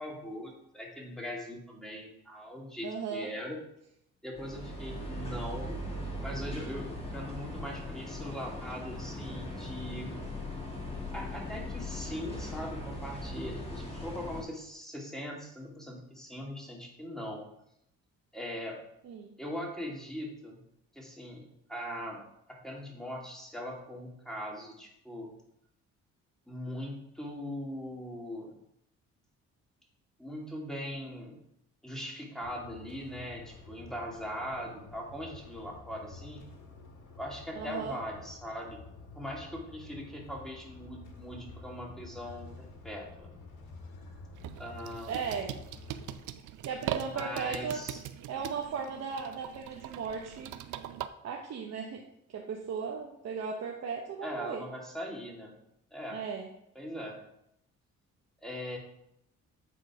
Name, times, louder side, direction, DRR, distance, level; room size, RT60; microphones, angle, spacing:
voice 1, 0.0-3.6 4.2-5.8 6.2-10.1 11.1-17.4 18.3-18.8 19.4-20.6 20.9-21.4 21.7-22.2 22.5-25.3 26.5-28.5 30.2-31.4 31.8-36.4 37.2-38.8 39.1-43.3 44.6-45.3 47.0-48.0 54.2-55.5 55.9-56.2 56.8-57.2 58.4-58.8, equal, ahead, -2 dB, 2.4 m, -40 dB
voice 2, 2.8-3.3 19.0-19.3 37.6-38.0 45.1-45.5 46.6-47.8 48.3-50.5 51.2-52.0 52.3-54.6 56.1-56.5, right 6 dB, 60° right, 1 dB, 0.9 m, -36 dB
sound 1, 4.3-14.4, left 1 dB, 20° left, 2.1 m, -39 dB
sound 2, 32.4-46.1, left 3 dB, 80° left, 1.7 m, -50 dB
sound 3, 44.3-51.1, right 11 dB, 80° right, 0.6 m, -41 dB
9.3 x 3.9 x 4.8 m, 0.78 s
cardioid pair, 90°, 30 cm